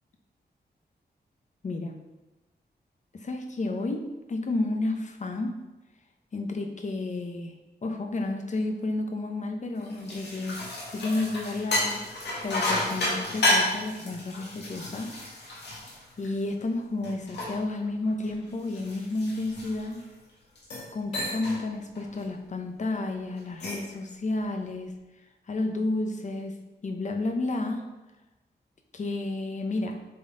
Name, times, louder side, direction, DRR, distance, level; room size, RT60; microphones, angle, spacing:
voice 1, 1.6-2.0 3.1-5.6 6.3-7.6 7.8-12.0 12.4-15.1 15.5-15.6 16.2-20.0 20.9-25.0 25.5-27.9 28.9-30.0, left 2 dB, 45° left, 4 dB, 0.8 m, -31 dB
sound 1, 9.8-16.6 17.0-20.1 20.6-20.9 21.1-21.6 22.0-22.2 23.4-23.9, left 1 dB, 80° left, 1.8 m, -31 dB
7.7 x 4.1 x 3.8 m, 1.1 s
wide cardioid pair, 130°, 18 cm